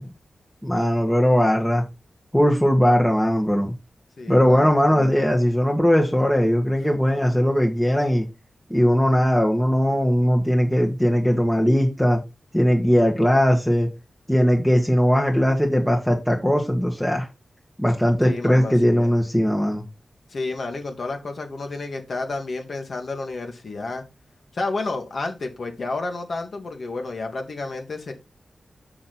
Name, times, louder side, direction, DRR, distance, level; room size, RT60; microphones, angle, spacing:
voice 1, 0.6-1.8 2.3-3.7 4.3-8.3 8.7-12.2 12.5-13.9 14.3-17.3 17.8-19.8, equal, 5° left, 1.4 m, -19 dB
voice 2, 4.2-5.1 18.2-19.1 20.3-24.0 24.5-28.1, left 3 dB, 60° left, 1.9 m, -31 dB
6.4 x 5.8 x 4.3 m
wide cardioid pair, 95°, 0 cm